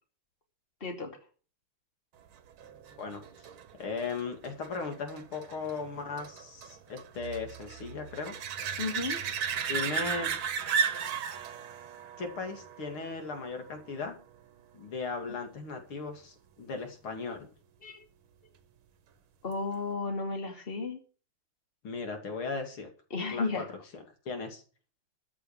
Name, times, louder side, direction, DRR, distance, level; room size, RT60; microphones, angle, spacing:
voice 1, 0.8-1.2 8.8-9.2 15.3-15.4 17.8-18.0 19.4-21.0 23.1-23.7, left 3 dB, 25° left, 3 dB, 2.7 m, -33 dB
sound 1, 2.6-13.9 19.5-19.6, right 7 dB, 75° right, 2.0 m, -35 dB
voice 2, 3.8-8.3 9.7-10.3 12.2-14.2 14.7-17.5 21.8-22.9 23.3-23.6 24.3-24.6, left 4 dB, 75° left, 4 dB, 3.2 m, -37 dB
13.5 x 6.9 x 7.3 m, 0.38 s
omnidirectional pair, 2.3 m